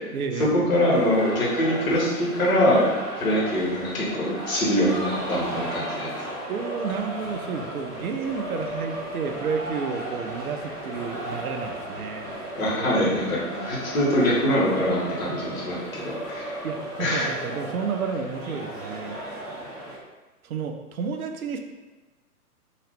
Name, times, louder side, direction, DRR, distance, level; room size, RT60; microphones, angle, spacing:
voice 1, 0.1-0.5 6.5-12.3 12.6-13.4 16.6-19.2 20.4-21.6, right 5 dB, 70° right, 5 dB, 0.5 m, -31 dB
voice 2, 0.7-2.9 3.2-6.1 12.6-16.5 17.0-17.3, equal, 60° left, -6 dB, 1.3 m, -23 dB
sound 1, 0.7-20.0, right 1 dB, ahead, 0.8 m, -35 dB
2.8 x 2.3 x 3.3 m, 1.2 s
figure-of-eight pair, 115°, 46 cm